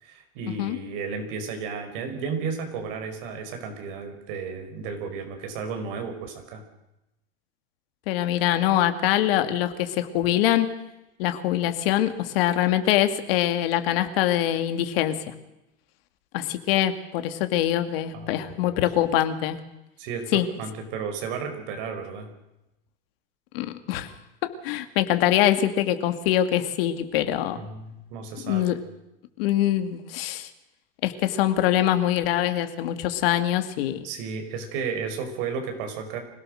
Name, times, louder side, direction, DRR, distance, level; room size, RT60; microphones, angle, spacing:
voice 1, 0.0-6.6 18.1-18.8 20.0-22.3 27.6-28.8 34.0-36.2, right 5 dB, 60° right, 5 dB, 5.3 m, -33 dB
voice 2, 8.1-10.7 11.2-15.3 16.3-19.6 20.3-20.5 23.5-24.1 24.4-27.6 28.4-28.8 29.4-30.5 31.0-34.0, left 12 dB, 70° left, 9 dB, 2.4 m, -24 dB
25.0 x 18.0 x 6.5 m, 0.92 s
supercardioid pair, 165°, 30 cm